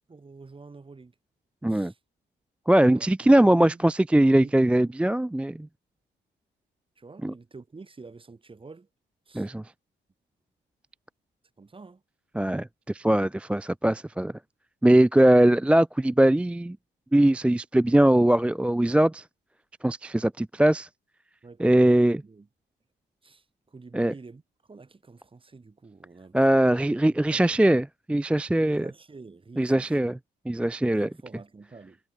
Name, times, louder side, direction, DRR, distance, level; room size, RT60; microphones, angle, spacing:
voice 1, 0.1-1.1 1.7-2.0 2.9-3.8 4.4-5.0 7.0-8.9 9.3-9.5 11.6-12.0 21.4-22.5 23.2-24.4 24.7-27.6 28.6-30.2 30.9-32.0, right 4 dB, 25° right, 5.9 m, -48 dB
voice 2, 1.6-1.9 2.7-5.7 7.2-7.3 9.3-9.6 12.3-14.3 14.8-16.8 17.1-19.2 19.8-20.9 21.6-22.2 23.9-24.1 26.3-28.9 29.6-30.1 30.5-31.1, right 1 dB, 5° right, 0.4 m, -21 dB
cardioid pair, 90°, 20 cm